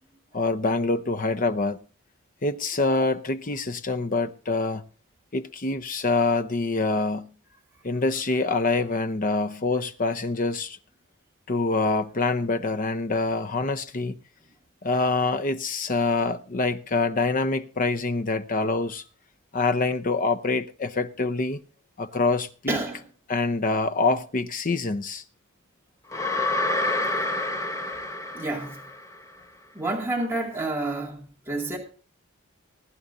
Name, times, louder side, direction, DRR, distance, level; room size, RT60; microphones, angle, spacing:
voice 1, 0.3-1.8 2.4-4.8 5.3-7.3 7.8-10.8 11.5-14.2 14.8-19.0 19.5-21.6 22.0-22.8 23.3-25.2, left 3 dB, 40° left, 0.8 m, -25 dB
voice 2, 22.7-23.0 28.3-28.8 29.7-31.8, right 2 dB, 10° right, 2.3 m, -29 dB
Monster Sigh in Cave, 26.1-29.2, left 2 dB, 15° left, 1.0 m, -28 dB
20.5 x 10.0 x 2.7 m
head